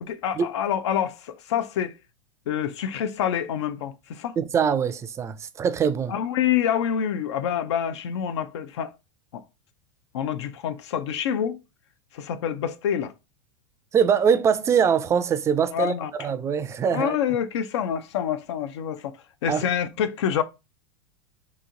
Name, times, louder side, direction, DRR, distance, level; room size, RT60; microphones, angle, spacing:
voice 1, 0.0-1.9 2.5-4.4 6.1-8.9 9.3-9.4 10.1-11.6 12.1-13.1 15.7-16.1 16.9-19.2 19.4-20.4, left 9 dB, 80° left, 0.5 m, -27 dB
voice 2, 4.4-6.1 13.9-17.2 19.5-19.6, right 7 dB, 20° right, 0.4 m, -23 dB
3.0 x 2.7 x 3.7 m
hypercardioid pair, 120°, 15 cm